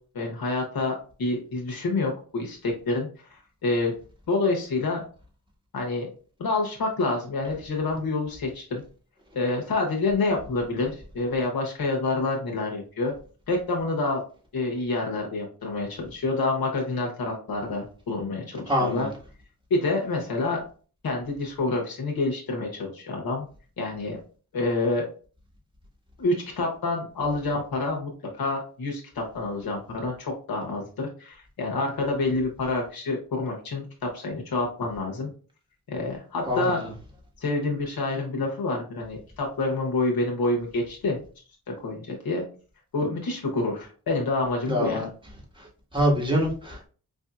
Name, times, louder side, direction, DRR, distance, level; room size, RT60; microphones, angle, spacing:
voice 1, 0.1-3.9 4.3-5.0 5.7-6.1 6.4-8.8 9.3-13.1 13.5-14.2 14.5-19.1 19.7-20.6 21.0-23.5 23.8-24.2 24.5-25.0 26.2-35.3 35.9-36.8 37.4-41.2 41.7-42.4 42.9-45.0, left 2 dB, 85° left, 0 dB, 0.9 m, -27 dB
voice 2, 18.7-19.1 36.5-36.8 44.7-45.1 45.9-46.9, equal, 15° right, -2 dB, 1.7 m, -24 dB
4.9 x 2.6 x 2.4 m, 0.39 s
cardioid pair, 65°, 36 cm